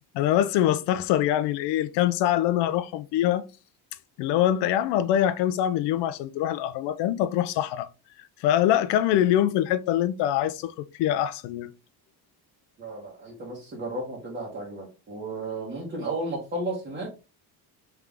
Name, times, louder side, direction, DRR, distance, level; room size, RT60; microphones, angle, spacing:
voice 1, 0.1-3.4 4.2-7.9 8.4-10.7 11.0-11.7, left 12 dB, 85° left, 0.6 m, -24 dB
voice 2, 12.8-17.1, right 2 dB, 25° right, 1.2 m, -33 dB
3.6 x 3.3 x 3.4 m
cardioid pair, 160°, 40 cm